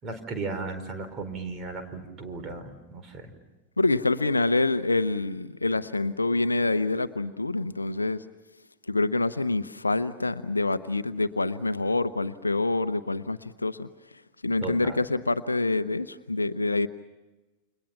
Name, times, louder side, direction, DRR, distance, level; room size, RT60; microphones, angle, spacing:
voice 1, 0.0-3.3 14.6-15.1, right 3 dB, 30° right, 7 dB, 4.6 m, -36 dB
voice 2, 3.8-8.2 8.9-13.9 14.4-16.9, left 2 dB, 80° left, 12 dB, 0.8 m, -26 dB
29.5 x 27.5 x 5.8 m, 1.1 s
figure-of-eight pair, 90°, 0 cm